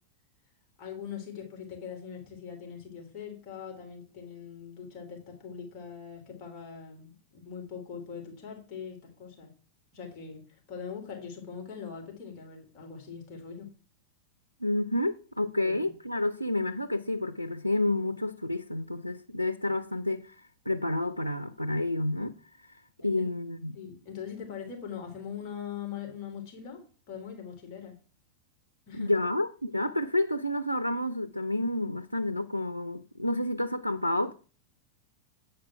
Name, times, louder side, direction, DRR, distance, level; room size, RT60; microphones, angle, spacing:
voice 1, 0.8-9.5 9.9-13.7 15.6-15.9 23.7-26.8 27.1-27.9 28.9-29.1, left 7 dB, 40° left, 3.2 m, -42 dB
voice 2, 14.6-20.4 20.7-23.8 28.9-34.3, left 1 dB, 90° right, 0.4 m, -30 dB
9.2 x 5.1 x 5.8 m
figure-of-eight pair, 90°, 0 cm